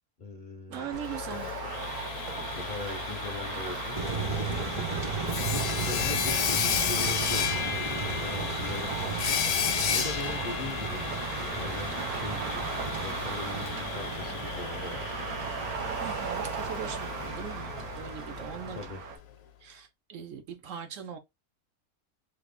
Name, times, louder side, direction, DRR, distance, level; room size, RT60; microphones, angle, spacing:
voice 1, 0.2-1.4 2.3-4.0 5.5-11.1 11.5-15.0 18.7-19.0, left 3 dB, 50° left, 0.6 m, -41 dB
voice 2, 0.7-1.5 16.0-18.9 19.6-21.2, right 8 dB, 70° right, 0.8 m, -40 dB
sound 1, 0.7-19.2, right 7 dB, 85° right, 1.3 m, -38 dB
Sawing, 0.9-18.7, left 8 dB, 70° left, 1.0 m, -33 dB
sound 2, 4.0-18.9, right 4 dB, 30° right, 0.7 m, -36 dB
3.5 x 2.3 x 3.4 m
omnidirectional pair, 1.6 m